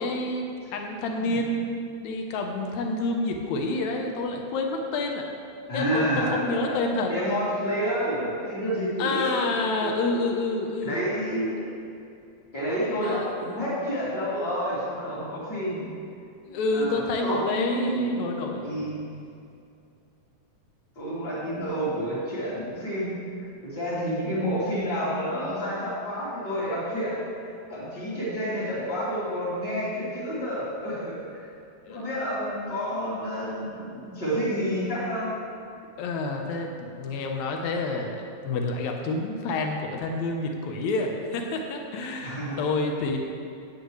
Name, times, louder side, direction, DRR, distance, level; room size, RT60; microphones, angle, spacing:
voice 1, 0.0-5.3 5.7-7.1 7.8-8.0 9.0-11.0 13.0-13.3 16.4-18.7 31.8-32.1 36.0-43.2, left 2 dB, 75° left, 2 dB, 2.3 m, -28 dB
voice 2, 5.7-9.4 9.8-9.9 10.8-11.7 12.5-15.9 16.7-18.2 18.6-19.1 20.9-31.2 31.9-35.3 42.2-42.6, equal, 35° left, -12 dB, 3.4 m, -29 dB
16.5 x 9.1 x 3.2 m, 2.5 s
omnidirectional pair, 3.4 m